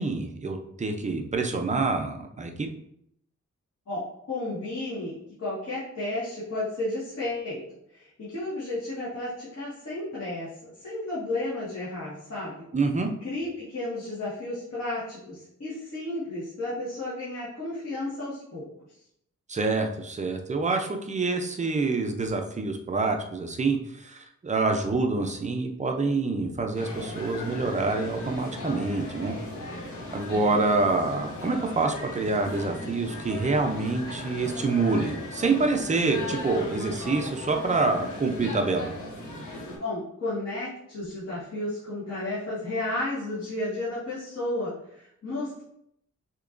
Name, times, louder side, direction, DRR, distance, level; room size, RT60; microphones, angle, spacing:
voice 1, 0.0-2.7 12.7-13.1 19.5-29.3 30.1-38.9, right 3 dB, 25° right, 4 dB, 0.5 m, -26 dB
voice 2, 4.3-7.6 7.9-12.6 13.2-18.7 39.8-45.6, left 2 dB, 60° left, -11 dB, 1.7 m, -33 dB
sound 1, 26.8-39.8, left 1 dB, 80° left, 1.2 m, -37 dB
6.6 x 2.9 x 2.5 m, 0.74 s
wide cardioid pair, 155°, 30 cm